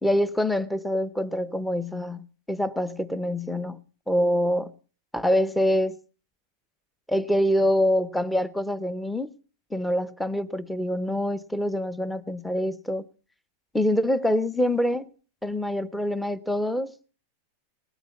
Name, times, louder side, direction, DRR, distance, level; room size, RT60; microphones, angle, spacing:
voice 1, 0.0-4.7 5.1-6.0 7.1-9.3 9.7-13.1 13.7-15.1 15.4-17.0, equal, 5° left, 0.6 m, -25 dB
19.0 x 8.0 x 6.9 m
supercardioid pair, 150°, 0 cm